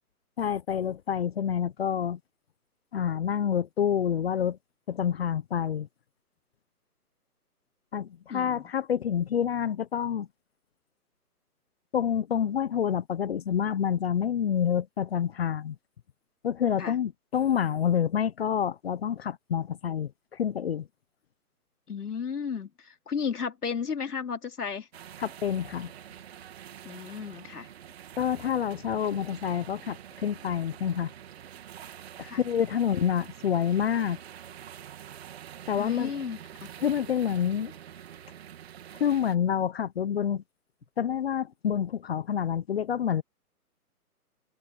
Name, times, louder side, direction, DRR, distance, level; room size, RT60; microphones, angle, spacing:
voice 1, 0.4-2.2 2.9-4.6 4.9-5.9 7.9-10.3 11.9-15.7 16.4-20.9 25.2-25.9 28.2-31.1 32.2-34.2 35.7-36.1 36.8-37.7 39.0-40.4 41.0-43.2, left 8 dB, 40° left, 1.2 m, -28 dB
voice 2, 8.3-8.7 16.8-17.0 21.9-24.9 26.8-27.7 32.2-32.4 35.8-36.7, left 6 dB, 75° left, 3.9 m, -34 dB
sound 1, 24.9-39.4, right 10 dB, 40° right, 3.0 m, -46 dB
hypercardioid pair, 155°, 46 cm